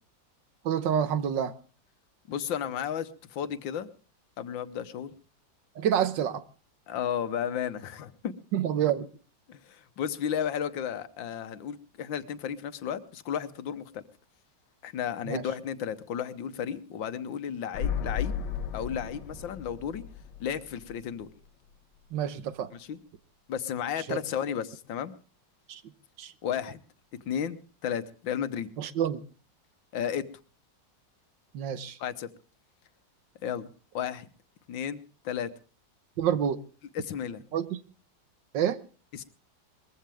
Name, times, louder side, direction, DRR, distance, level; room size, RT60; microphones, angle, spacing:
voice 1, 0.6-1.5 5.8-6.4 8.5-9.1 15.3-15.4 22.1-22.7 24.1-24.2 25.7-25.8 26.2-26.3 28.8-29.2 31.5-32.0 36.2-36.6 37.5-37.8 38.5-38.8, right 9 dB, 75° right, 1.6 m, -28 dB
voice 2, 2.3-3.9 4.4-5.1 6.9-8.3 9.5-14.0 14.8-18.4 18.7-20.0 20.4-21.3 22.7-23.0 23.5-25.1 26.4-26.8 27.3-28.7 29.9-30.3 32.0-32.3 33.4-33.7 33.9-34.3 34.7-35.5 37.0-37.4 39.1-39.2, left 8 dB, 85° left, 1.7 m, -33 dB
sound 1, 17.7-21.5 21.7-21.8, left 7 dB, 70° left, 1.5 m, -35 dB
21.0 x 15.0 x 3.5 m
omnidirectional pair, 2.0 m